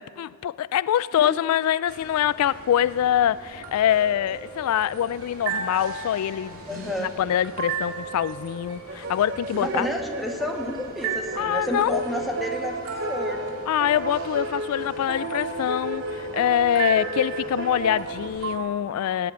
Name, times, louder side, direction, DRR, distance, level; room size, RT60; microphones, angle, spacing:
voice 1, 0.0-9.9 11.4-12.0 13.7-19.3, left 10 dB, 90° left, 18 dB, 0.3 m, -24 dB
sound 1, 1.9-18.6, right 4 dB, 85° right, 2.2 m, -36 dB
voice 2, 6.7-7.1 9.6-12.8 13.1-13.5, equal, ahead, 2 dB, 1.3 m, -30 dB
sound 2, 8.9-18.3, right 2 dB, 55° right, 0.9 m, -33 dB
18.5 x 9.2 x 8.1 m, 2.1 s
head